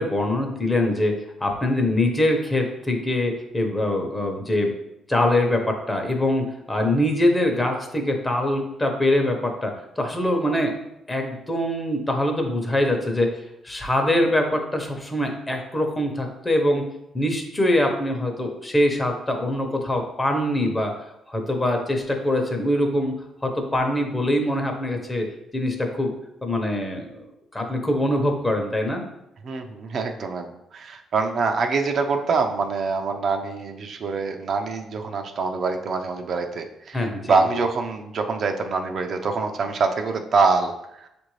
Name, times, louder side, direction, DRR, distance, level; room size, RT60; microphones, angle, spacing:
voice 1, 0.0-4.7 5.1-10.8 11.1-13.3 13.6-16.8 17.1-20.9 21.3-23.1 23.4-26.1 26.4-27.3 27.5-29.0 36.9-37.4, left 1 dB, 20° left, 3 dB, 0.8 m, -23 dB
voice 2, 29.4-41.1, right 4 dB, 55° right, 5 dB, 0.5 m, -25 dB
6.3 x 2.6 x 3.1 m, 0.84 s
cardioid pair, 90°, 0 cm